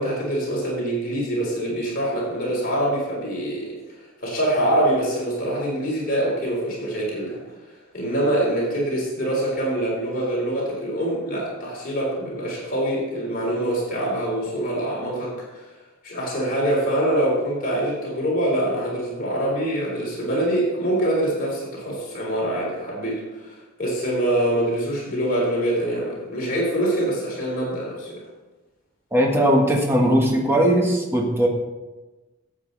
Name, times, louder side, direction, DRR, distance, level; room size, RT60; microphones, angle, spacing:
voice 1, 0.0-3.7 4.2-7.4 7.9-15.6 16.0-28.2, right 1 dB, 45° left, -4 dB, 3.9 m, -24 dB
voice 2, 29.1-31.5, right 1 dB, 10° right, 0 dB, 1.5 m, -19 dB
13.5 x 8.3 x 4.1 m, 1.2 s
head